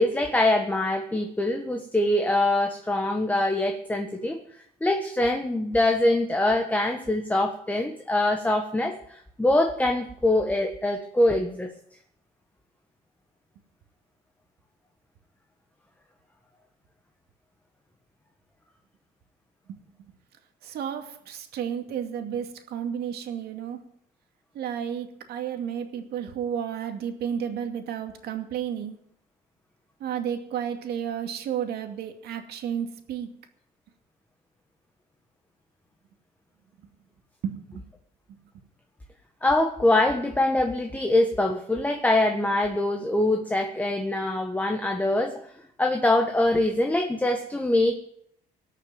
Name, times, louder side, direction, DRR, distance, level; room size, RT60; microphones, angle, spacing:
voice 1, 0.0-4.4 4.8-11.7 39.4-45.3 45.8-47.9, left 1 dB, 10° left, 4 dB, 1.4 m, -24 dB
voice 2, 20.6-23.8 24.5-29.0 30.0-33.3 37.4-37.8 38.3-38.4, right 8 dB, 70° right, 6 dB, 2.3 m, -32 dB
19.0 x 6.6 x 9.1 m, 0.69 s
cardioid pair, 110°, 17 cm